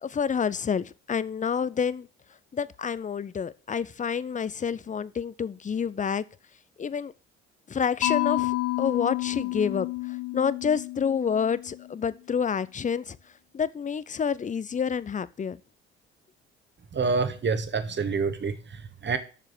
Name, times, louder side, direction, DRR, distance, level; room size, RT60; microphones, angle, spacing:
voice 1, 0.0-2.1 2.5-6.2 6.8-7.1 7.7-13.2 13.5-15.6, left 7 dB, 25° left, 0.7 m, -28 dB
Mallet percussion, 8.0-12.0, left 18 dB, 60° left, 1.1 m, -30 dB
voice 2, 16.9-19.2, right 4 dB, 35° right, 1.7 m, -27 dB
7.3 x 6.9 x 8.0 m
hypercardioid pair, 55°, 33 cm